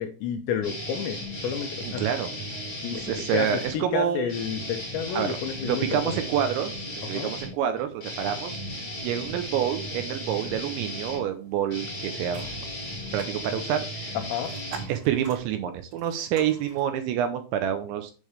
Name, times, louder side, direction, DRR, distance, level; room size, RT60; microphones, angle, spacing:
voice 1, 0.0-2.1 2.8-6.2 7.1-7.3 14.1-14.5, left 8 dB, 80° left, 6 dB, 2.7 m, -31 dB
sound 1, 0.6-3.8 4.3-15.4, equal, 40° left, 1.5 m, -36 dB
voice 2, 2.0-2.3 3.0-4.3 5.1-5.4 5.6-8.6 9.0-12.5 13.1-14.2 14.7-18.1, right 9 dB, 85° right, 8 dB, 2.8 m, -28 dB
sound 2, 12.3-14.6, equal, 50° right, 1.8 m, -50 dB
sound 3, 12.9-16.9, right 3 dB, 35° right, 2.6 m, -49 dB
8.5 x 6.4 x 3.3 m, 0.36 s
omnidirectional pair, 5.7 m